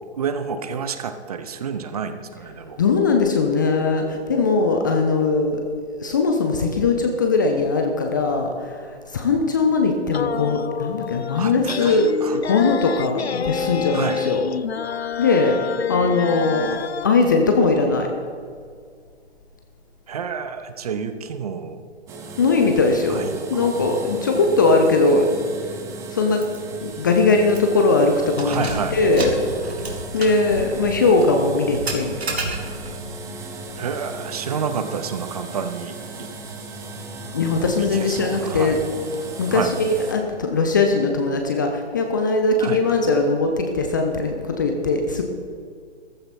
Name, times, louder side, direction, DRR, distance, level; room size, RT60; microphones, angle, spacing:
voice 1, 0.2-2.8 11.4-12.4 13.9-14.3 16.0-16.8 20.1-21.8 23.1-23.8 28.4-29.0 33.8-36.3 37.8-38.8 39.5-39.7 42.6-42.8, right 6 dB, 35° right, 9 dB, 0.9 m, -29 dB
voice 2, 2.8-5.6 6.0-14.4 14.9-16.7 17.0-18.1 22.4-25.3 26.1-29.5 30.1-32.5 37.3-38.8 39.4-45.2, left 3 dB, 15° left, 3 dB, 0.6 m, -20 dB
sound 1, 10.1-17.1, left 7 dB, 65° left, 0.6 m, -28 dB
sound 2, 22.1-40.1, right 2 dB, 10° right, 1.0 m, -36 dB
Keys jangling, 26.4-26.6 26.9-27.0 27.5-27.8 28.3-33.0, right 2 dB, 60° right, 2.8 m, -31 dB
14.5 x 14.5 x 4.3 m, 2.1 s
figure-of-eight pair, 135°, 35 cm